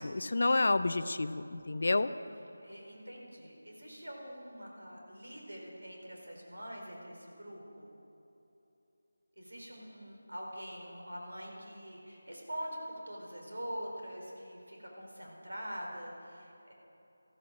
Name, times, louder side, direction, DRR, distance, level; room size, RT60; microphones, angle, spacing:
voice 1, 0.0-2.1, left 2 dB, 55° left, 13 dB, 0.5 m, -29 dB
voice 2, 2.6-7.9 9.4-16.7, equal, 70° right, -1 dB, 4.5 m, -44 dB
14.0 x 13.5 x 6.5 m, 2.9 s
figure-of-eight pair, 160°, 0 cm